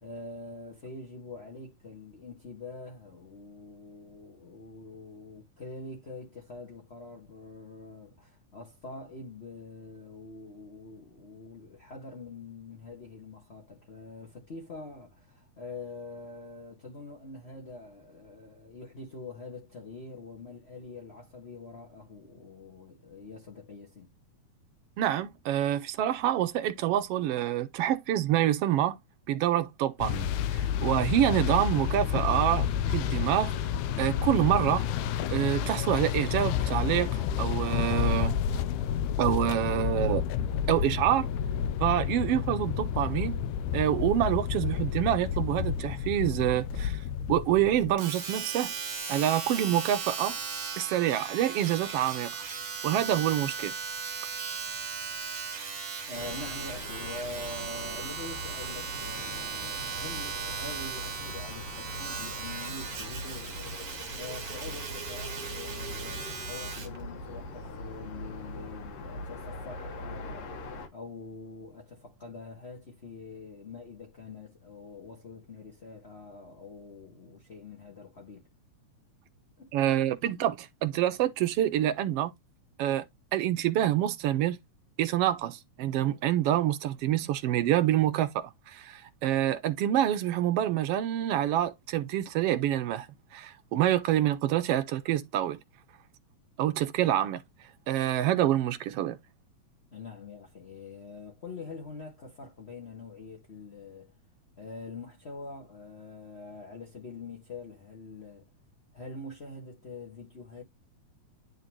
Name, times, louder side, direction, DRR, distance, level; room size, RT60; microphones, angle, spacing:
voice 1, 0.0-24.1 56.1-63.7 64.1-78.5 79.6-79.8 99.9-104.1 104.6-108.5 108.9-110.6, left 3 dB, 35° left, 1.1 m, -44 dB
voice 2, 25.0-29.0 29.3-33.5 34.0-34.9 35.3-38.4 39.2-40.2 40.7-41.3 41.8-43.3 43.7-47.0 47.3-48.7 49.1-50.4 50.8-52.4 52.8-53.7 79.7-82.3 82.8-83.0 83.3-84.6 85.0-93.1 93.3-95.6 96.6-97.4 97.9-99.2, right 12 dB, 75° right, 1.4 m, -27 dB
sound 1, 30.0-47.9, left 9 dB, 85° left, 2.0 m, -30 dB
Domestic sounds home sounds, 48.0-67.0 67.7-67.8, right 5 dB, 45° right, 1.3 m, -37 dB
sound 2, 56.1-70.9, left 1 dB, 65° left, 2.5 m, -41 dB
10.5 x 4.0 x 3.0 m
omnidirectional pair, 3.4 m